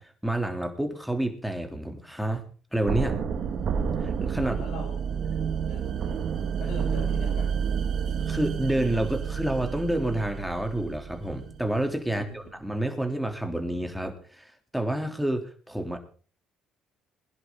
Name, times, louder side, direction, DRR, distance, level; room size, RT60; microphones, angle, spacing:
voice 1, 0.0-2.4 2.7-3.2 4.0-4.6 8.3-16.0, right 1 dB, 5° right, 5 dB, 3.4 m, -29 dB
sound 1, 2.9-11.7, right 7 dB, 60° right, 1.7 m, -29 dB
voice 2, 4.4-5.0 5.6-6.3 6.6-7.6 12.1-12.5, left 3 dB, 75° left, 1 dB, 7.9 m, -42 dB
21.0 x 10.5 x 4.0 m, 0.40 s
hypercardioid pair, 60°, 0 cm